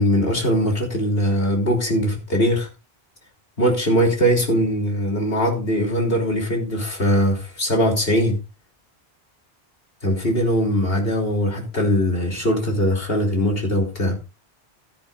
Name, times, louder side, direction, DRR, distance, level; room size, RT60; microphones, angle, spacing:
voice 1, 0.0-2.7 3.6-8.4 10.0-14.1, equal, 70° left, 1 dB, 3.5 m, -21 dB
15.5 x 11.0 x 2.5 m, 0.30 s
omnidirectional pair, 1.0 m